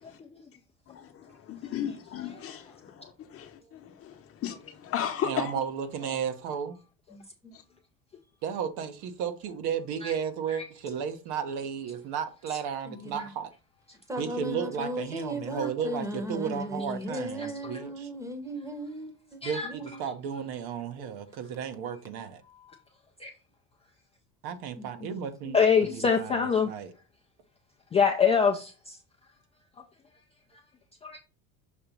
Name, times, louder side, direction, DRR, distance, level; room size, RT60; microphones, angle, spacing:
voice 1, 0.9-5.5 7.5-7.6, left 9 dB, 35° left, 0.8 m, -35 dB
voice 2, 5.2-6.8 8.4-13.5 14.2-18.1 19.4-22.4 24.4-26.9, right 7 dB, 70° right, 1.1 m, -34 dB
voice 3, 7.1-7.5 12.8-13.3 14.1-20.0 24.8-26.0, right 1 dB, 10° right, 0.9 m, -37 dB
voice 4, 25.5-26.7 27.9-29.0 31.0-31.2, left 6 dB, 15° left, 0.3 m, -24 dB
6.5 x 2.9 x 5.2 m
cardioid pair, 145°, 38 cm